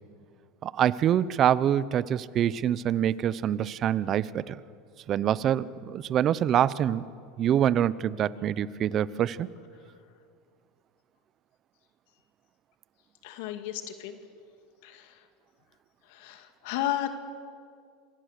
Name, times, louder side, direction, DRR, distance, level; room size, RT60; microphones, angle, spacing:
voice 1, 0.6-4.6 5.1-7.0 7.4-9.5, right 10 dB, 40° right, 18 dB, 0.8 m, -25 dB
voice 2, 13.2-14.2 14.8-15.2 16.1-17.1, left 13 dB, 70° left, 7 dB, 2.2 m, -33 dB
27.5 x 25.0 x 6.7 m, 2.2 s
supercardioid pair, 120°, 0 cm